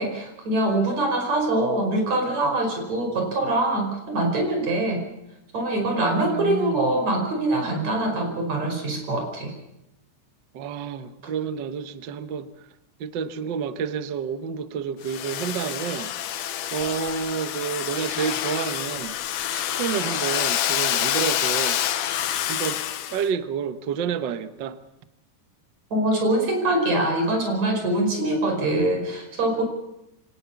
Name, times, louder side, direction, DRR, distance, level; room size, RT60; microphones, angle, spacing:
voice 1, 0.0-5.0 5.5-9.5 25.9-29.6, right 2 dB, 55° right, 3 dB, 6.4 m, -24 dB
voice 2, 6.2-6.8 10.5-12.5 13.0-16.1 16.7-19.1 19.5-21.8 22.5-22.8 23.1-24.8, right 7 dB, 80° right, 10 dB, 1.0 m, -29 dB
Domestic sounds home sounds, 15.0-23.3, left 11 dB, 75° left, 2.5 m, -27 dB
25.0 x 18.5 x 7.1 m, 0.87 s
omnidirectional pair, 3.7 m